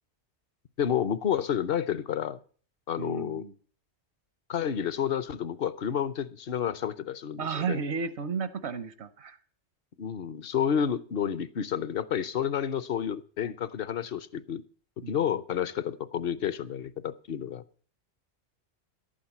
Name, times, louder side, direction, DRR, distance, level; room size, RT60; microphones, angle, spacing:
voice 1, 0.8-2.4 2.9-3.4 4.5-7.8 10.0-14.6 15.1-17.6, left 9 dB, 60° left, 16 dB, 0.9 m, -30 dB
voice 2, 3.0-3.5 7.4-9.4 15.0-15.2, right 5 dB, 75° right, 12 dB, 1.1 m, -33 dB
11.5 x 8.8 x 7.2 m, 0.43 s
omnidirectional pair, 1.1 m